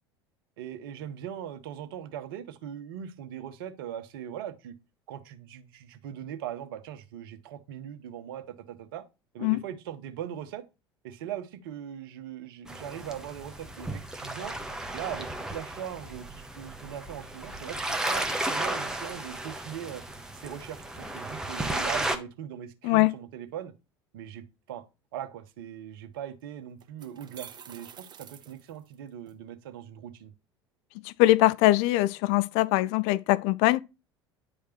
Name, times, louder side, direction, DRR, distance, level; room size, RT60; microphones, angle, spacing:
voice 1, 0.6-4.7 5.1-9.0 9.3-10.6 11.0-14.6 14.9-20.0 20.3-23.7 24.1-24.8 25.1-30.3, right 10 dB, 60° right, 1.1 m, -40 dB
sound 1, 12.7-22.2, right 1 dB, 5° right, 1.2 m, -34 dB
voice 2, 22.8-23.1 31.0-33.8, left 17 dB, 50° left, 0.5 m, -22 dB
sound 2, 26.1-26.2 26.8-29.3, right 8 dB, 35° right, 1.0 m, -48 dB
9.8 x 5.0 x 3.0 m
figure-of-eight pair, 70°, 13 cm